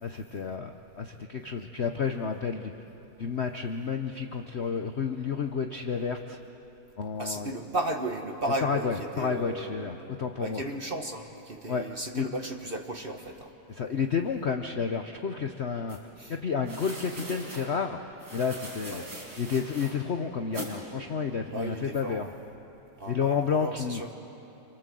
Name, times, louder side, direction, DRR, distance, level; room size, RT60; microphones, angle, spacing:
voice 1, 0.0-2.7 3.2-6.4 7.0-7.5 8.6-10.6 11.7-11.9 12.1-12.3 13.7-16.0 16.3-19.0 19.4-22.3 23.1-24.0, left 6 dB, 80° left, 5 dB, 0.5 m, -31 dB
voice 2, 7.2-10.1 10.4-13.5 16.2-16.3 18.9-19.1 21.5-22.3 23.0-24.1, right 1 dB, 35° right, 4 dB, 1.0 m, -35 dB
sound 1, 15.9-16.0 16.6-17.7 18.2-19.9 20.5-20.7, right 1 dB, 85° right, 6.0 m, -41 dB
27.5 x 26.0 x 7.7 m, 3.0 s
omnidirectional pair, 2.4 m